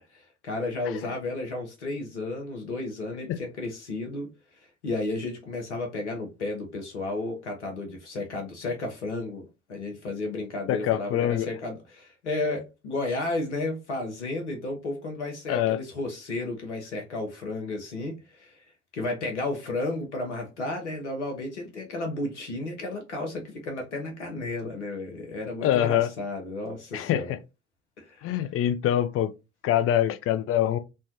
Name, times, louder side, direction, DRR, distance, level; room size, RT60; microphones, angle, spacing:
voice 1, 0.1-18.6 18.9-27.4 28.0-28.5, left 2 dB, 85° left, 0.8 m, -33 dB
voice 2, 10.7-11.5 15.5-15.8 25.6-26.1 26.9-27.2 28.2-29.3 29.6-30.8, left 11 dB, 40° left, 0.5 m, -24 dB
3.2 x 2.1 x 2.7 m
figure-of-eight pair, 60°, 34 cm